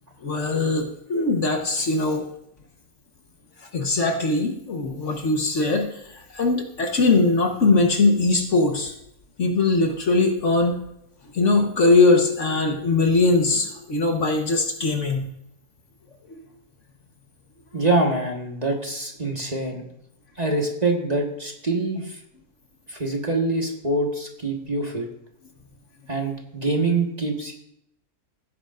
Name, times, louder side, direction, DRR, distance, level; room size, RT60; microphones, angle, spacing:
voice 1, 0.2-2.2 3.7-8.9 9.4-10.8 11.3-15.2 16.3-16.4, left 3 dB, 55° left, 3 dB, 1.5 m, -21 dB
voice 2, 17.7-19.8 20.4-22.2 22.9-25.1 26.1-27.5, right 2 dB, 25° right, 0 dB, 1.6 m, -25 dB
16.5 x 9.8 x 2.5 m, 0.76 s
omnidirectional pair, 1.6 m